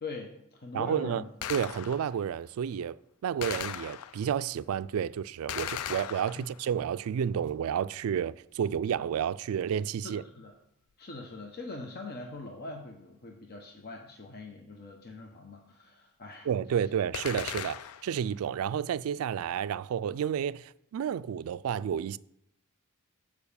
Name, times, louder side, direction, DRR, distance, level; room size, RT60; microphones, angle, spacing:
voice 1, 0.0-1.3 6.4-6.5 10.0-10.5 11.0-16.5, left 3 dB, 45° left, 0.9 m, -42 dB
voice 2, 0.7-1.2 1.5-3.0 3.2-10.2 16.5-22.2, right 8 dB, 70° right, 0.3 m, -31 dB
Gunshot gunfire, 1.4-2.2 3.4-4.4 5.5-6.8 17.1-18.2, left 9 dB, 75° left, 0.4 m, -38 dB
6.9 x 4.8 x 7.0 m
head